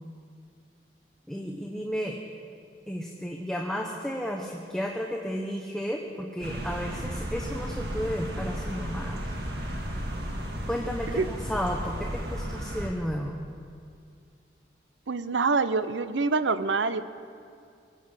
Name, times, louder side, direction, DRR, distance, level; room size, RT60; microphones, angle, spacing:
voice 1, 1.3-2.2 2.9-9.3 10.7-13.4, equal, 5° left, 0 dB, 0.8 m, -33 dB
sound 1, 6.4-12.9, equal, 60° right, 1.8 m, -34 dB
voice 2, 15.1-17.0, right 4 dB, 90° right, 13 dB, 0.6 m, -25 dB
21.5 x 8.3 x 7.4 m, 2.3 s
head